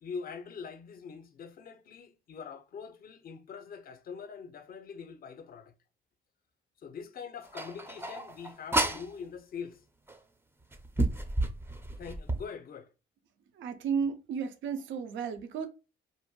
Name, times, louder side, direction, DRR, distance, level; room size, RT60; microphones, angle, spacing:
voice 1, 0.0-5.7 6.8-9.8 12.0-12.9, left 6 dB, 50° left, 0.5 m, -43 dB
sound 1, 7.5-9.1 10.1-10.2 10.7-12.4, right 1 dB, 10° right, 0.4 m, -31 dB
voice 2, 13.6-15.7, right 6 dB, 75° right, 0.5 m, -33 dB
2.6 x 2.1 x 2.9 m
cardioid pair, 90°, 20 cm